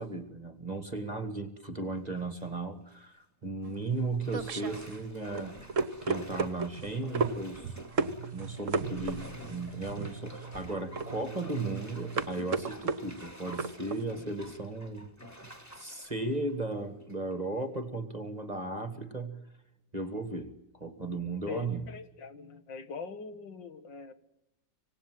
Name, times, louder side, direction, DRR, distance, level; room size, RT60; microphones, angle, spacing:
voice 1, 0.0-7.7 8.3-15.1 15.8-19.4 19.9-20.5 20.8-21.9, right 2 dB, 25° right, 9 dB, 1.7 m, -36 dB
Bathtub (filling or washing), 2.0-2.5 2.9-3.0 4.2-17.3 17.7-17.8, equal, 10° left, 2.6 m, -49 dB
sound 1, 3.6-14.0, right 4 dB, 50° right, 1.4 m, -34 dB
sound 2, 7.7-13.0, right 6 dB, 35° left, 3.7 m, -46 dB
voice 2, 21.5-24.1, left 5 dB, 85° left, 11 dB, 2.3 m, -42 dB
25.5 x 18.5 x 7.7 m, 0.86 s
omnidirectional pair, 1.9 m